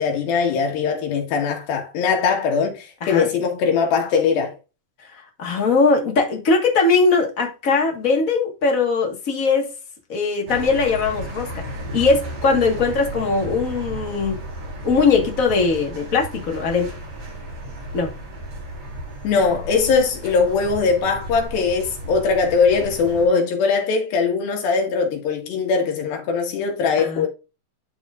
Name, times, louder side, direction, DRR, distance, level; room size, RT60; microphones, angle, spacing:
voice 1, 0.0-4.6 19.2-27.3, left 5 dB, 80° left, 3.5 m, -21 dB
voice 2, 5.4-9.7 10.1-11.5 11.9-14.4 14.8-16.9 17.9-18.1 27.0-27.3, left 4 dB, 60° left, 0.8 m, -20 dB
sound 1, 10.5-23.3, right 1 dB, 55° right, 5.1 m, -34 dB
12.0 x 4.2 x 2.5 m
omnidirectional pair, 4.2 m